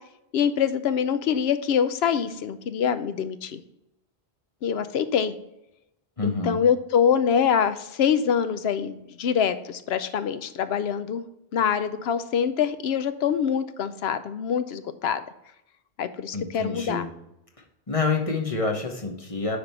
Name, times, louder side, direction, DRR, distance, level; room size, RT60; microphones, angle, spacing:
voice 1, 0.3-3.6 4.6-5.3 6.2-11.2 11.5-15.2 16.0-17.1, left 7 dB, 80° left, 12 dB, 0.8 m, -25 dB
voice 2, 6.2-6.6 16.3-17.1 17.9-19.6, left 4 dB, 35° left, 2 dB, 1.1 m, -27 dB
9.7 x 3.5 x 4.5 m, 0.85 s
omnidirectional pair, 1.1 m